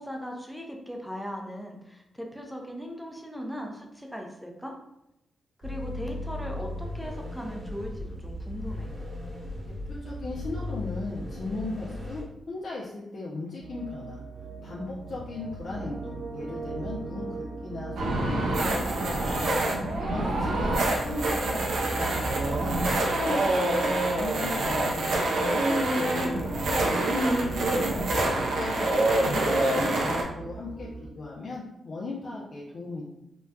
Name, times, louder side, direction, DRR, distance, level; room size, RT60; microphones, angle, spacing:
voice 1, 0.0-4.7 5.6-8.9 20.2-20.7, equal, ahead, 1 dB, 0.6 m, -38 dB
sound 1, 5.6-12.2, left 1 dB, 35° right, 0.8 m, -37 dB
voice 2, 9.9-14.2 14.6-19.4 20.0-25.1 25.6-27.6 28.3-33.1, left 2 dB, 55° left, -6 dB, 0.5 m, -37 dB
sound 2, 13.6-31.1, right 3 dB, 70° right, 1.0 m, -39 dB
sound 3, 18.0-30.2, right 1 dB, 85° right, 0.6 m, -26 dB
4.0 x 2.3 x 2.3 m, 0.85 s
cardioid pair, 90°, 0 cm